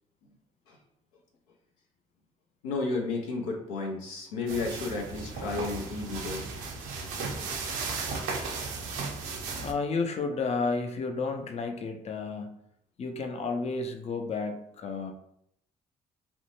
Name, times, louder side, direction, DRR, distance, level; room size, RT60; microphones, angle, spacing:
voice 1, 2.6-6.6 7.6-7.7, left 3 dB, 90° left, 0 dB, 0.5 m, -33 dB
sound 1, 4.5-9.7, right 4 dB, 80° right, 0.5 m, -35 dB
voice 2, 9.6-12.6 13.0-15.1, left 4 dB, 40° left, 4 dB, 0.5 m, -31 dB
2.5 x 2.1 x 2.9 m, 0.73 s
hypercardioid pair, 50°, 17 cm